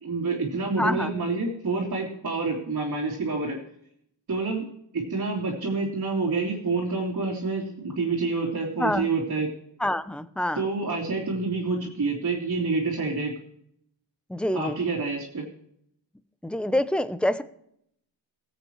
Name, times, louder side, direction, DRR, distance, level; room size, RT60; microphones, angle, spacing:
voice 1, 0.0-3.6 4.3-4.6 4.9-9.5 10.5-13.3 14.5-15.4, right 3 dB, 40° right, -5 dB, 3.0 m, -28 dB
voice 2, 0.8-1.1 8.8-9.1 9.8-10.7 14.3-14.8 16.4-17.4, left 1 dB, ahead, 13 dB, 0.6 m, -26 dB
20.0 x 8.2 x 3.0 m, 0.72 s
wide cardioid pair, 125°, 46 cm